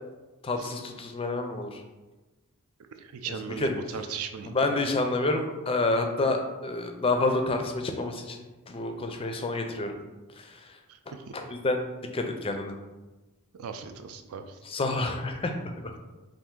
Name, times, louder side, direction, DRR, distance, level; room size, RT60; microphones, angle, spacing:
voice 1, 0.4-1.8 3.6-3.7 4.5-9.9 10.4-10.6 11.3-11.8 12.1-12.7 14.6-15.9, left 2 dB, 25° left, 5 dB, 0.4 m, -28 dB
voice 2, 3.0-4.9 10.9-11.0 13.6-14.6, right 6 dB, 65° right, 7 dB, 0.4 m, -38 dB
4.3 x 2.5 x 3.6 m, 1.2 s
head